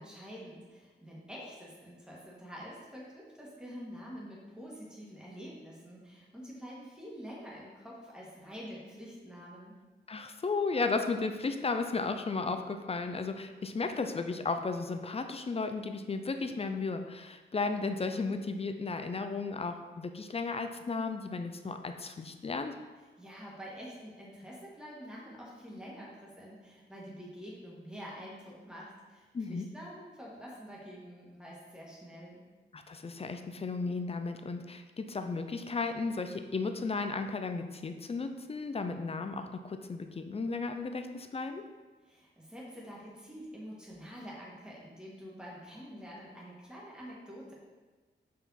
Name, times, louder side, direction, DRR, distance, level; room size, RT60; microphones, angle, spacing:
voice 1, 0.0-9.7 23.2-32.4 42.0-47.5, equal, 5° right, -5 dB, 1.7 m, -47 dB
voice 2, 10.1-22.7 29.3-29.7 32.7-41.6, left 4 dB, 30° left, 7 dB, 0.5 m, -34 dB
5.6 x 4.7 x 4.1 m, 1.3 s
wide cardioid pair, 110°, 19 cm